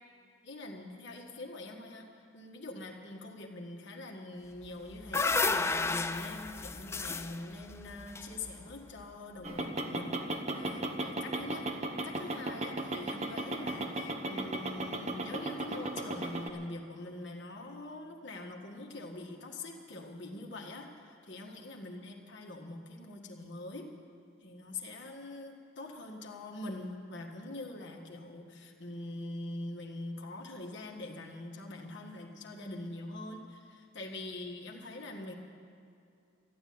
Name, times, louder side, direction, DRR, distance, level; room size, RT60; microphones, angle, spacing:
voice 1, 0.4-11.7 12.0-23.9 24.4-35.3, left 2 dB, 60° left, 0 dB, 1.7 m, -44 dB
sound 1, 4.6-8.9, left 3 dB, 15° left, 0.4 m, -32 dB
sound 2, 9.4-16.5, right 2 dB, 35° right, 0.9 m, -36 dB
14.0 x 10.5 x 9.5 m, 2.5 s
head